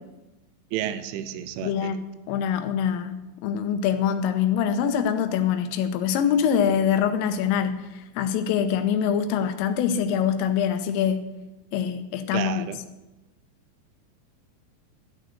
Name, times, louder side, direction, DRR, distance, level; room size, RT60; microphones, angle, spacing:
voice 1, 0.7-1.9 12.3-12.8, right 11 dB, 80° right, 12 dB, 2.9 m, -31 dB
voice 2, 1.6-2.0 2.3-3.2 3.4-11.2 11.7-12.7, left 8 dB, 85° left, 8 dB, 3.4 m, -24 dB
13.0 x 6.5 x 7.9 m, 1.0 s
omnidirectional pair, 5.8 m